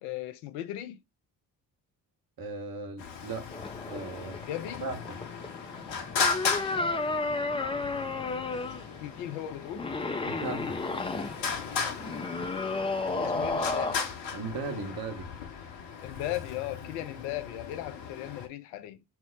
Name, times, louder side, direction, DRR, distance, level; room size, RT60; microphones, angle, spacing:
voice 1, 0.0-1.0 4.5-4.9 9.0-9.9 13.1-14.0 16.0-19.0, left 13 dB, 75° left, 0.6 m, -37 dB
voice 2, 2.4-3.6 3.9-4.4 4.8-5.2 10.3-10.8 14.3-15.3, right 3 dB, 45° right, 1.2 m, -37 dB
Traffic noise roadway noise, 3.0-18.5, left 6 dB, 60° left, 1.0 m, -37 dB
sound 1, 3.5-13.9, left 3 dB, 10° left, 0.4 m, -33 dB
4.4 x 2.0 x 3.8 m
hypercardioid pair, 40°, 49 cm